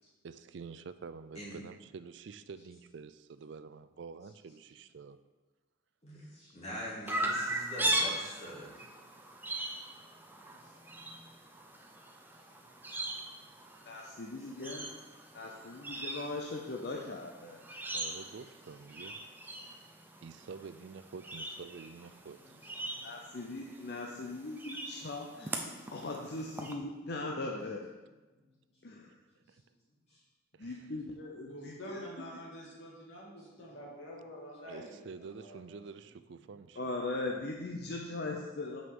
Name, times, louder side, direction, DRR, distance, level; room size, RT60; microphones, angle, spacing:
voice 1, 0.2-5.2 17.9-19.2 20.2-22.6 29.5-29.6 30.5-30.9 31.7-31.8 34.6-36.8, right 5 dB, 60° right, 12 dB, 0.4 m, -48 dB
voice 2, 6.0-8.8 10.4-11.2 12.5-12.7 13.8-13.9 14.4-14.5 22.3-22.4 22.8-23.6 28.3-28.8 29.5-29.6 30.1-30.2 30.7-30.9 33.4-33.5, equal, 30° left, -7 dB, 2.8 m, -46 dB
Chirp tweet, 7.1-26.7, right 1 dB, 10° right, 0.5 m, -40 dB
voice 3, 13.8-14.9 15.3-17.6 23.0-27.8 28.8-29.1 30.6-32.4 36.8-38.8, left 2 dB, 55° left, 0 dB, 0.6 m, -39 dB
voice 4, 31.5-35.6, equal, 70° left, -3 dB, 2.2 m, -47 dB
6.1 x 5.4 x 6.1 m, 1.2 s
head